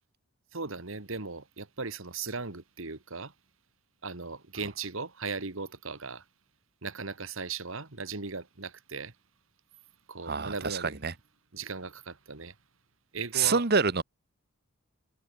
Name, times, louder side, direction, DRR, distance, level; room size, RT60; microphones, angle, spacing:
voice 1, 0.5-3.3 4.0-6.2 6.8-9.1 10.1-11.0 11.5-12.6 13.1-13.6, right 4 dB, 65° right, 1.8 m, -37 dB
voice 2, 10.3-11.1 13.3-14.0, right 5 dB, 45° right, 1.3 m, -26 dB
head